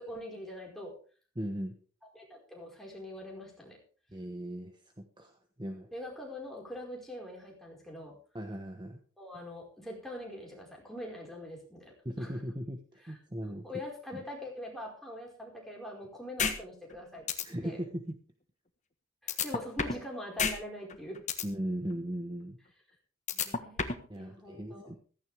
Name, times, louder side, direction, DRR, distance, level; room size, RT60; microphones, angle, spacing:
voice 1, 0.1-0.9 2.1-3.8 5.9-8.2 9.2-12.4 13.0-13.2 13.6-17.3 17.6-17.8 19.2-21.2 23.3-24.9, left 1 dB, ahead, -2 dB, 4.8 m, -43 dB
voice 2, 1.4-1.7 4.1-5.9 8.3-9.0 12.0-13.7 14.1-14.2 17.4-18.2 21.4-22.6 24.1-25.0, equal, 20° right, 5 dB, 1.2 m, -38 dB
sound 1, 16.4-16.5 16.9-17.0 17.3-17.4 19.3-20.0 20.4-20.5 20.9-21.4 23.3-24.0, left 6 dB, 35° left, 1.5 m, -29 dB
15.5 x 14.5 x 3.5 m, 0.41 s
head